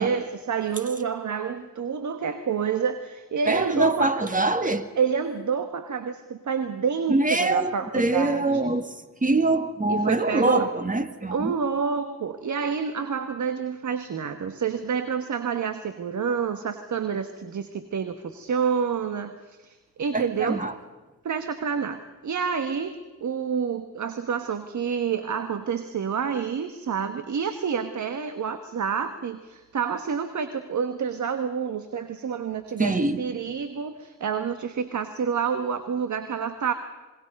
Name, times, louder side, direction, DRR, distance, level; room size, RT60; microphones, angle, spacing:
voice 1, 0.0-4.2 5.0-8.8 9.9-10.7 11.3-20.6 21.2-36.7, right 6 dB, 60° right, 9 dB, 1.4 m, -28 dB
voice 2, 3.5-4.9 7.1-8.9 9.2-11.5 20.1-20.7 32.8-33.2, right 2 dB, 25° right, 9 dB, 2.0 m, -24 dB
26.5 x 21.5 x 5.4 m, 1.2 s
cardioid pair, 55°, 33 cm